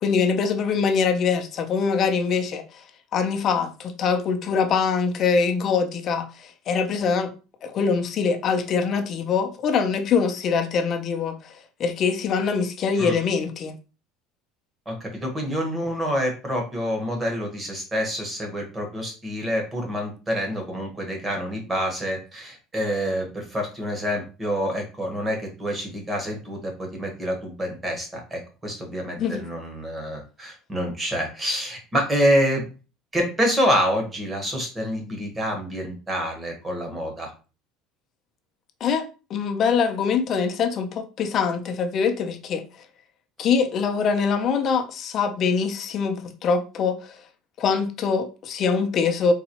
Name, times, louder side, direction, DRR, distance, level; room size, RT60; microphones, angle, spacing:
voice 1, 0.0-2.8 3.1-7.3 7.6-13.7 29.2-29.4 38.8-42.6 43.4-47.2 47.6-49.3, left 5 dB, 40° left, 0.5 m, -23 dB
voice 2, 14.9-32.7 33.1-37.3, equal, 15° right, 1.2 m, -27 dB
3.9 x 2.3 x 2.9 m
cardioid pair, 135°, 0 cm